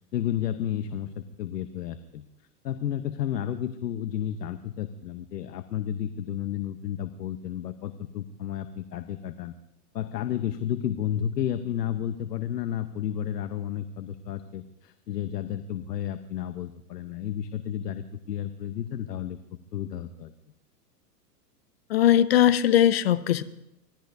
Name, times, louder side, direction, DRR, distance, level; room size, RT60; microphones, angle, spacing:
voice 1, 0.1-2.2 2.6-9.5 9.9-19.4 19.7-20.3, left 10 dB, 75° left, 10 dB, 1.0 m, -32 dB
voice 2, 21.9-23.4, left 11 dB, 40° left, 16 dB, 0.5 m, -20 dB
25.0 x 17.5 x 2.7 m, 0.85 s
hypercardioid pair, 165°, 49 cm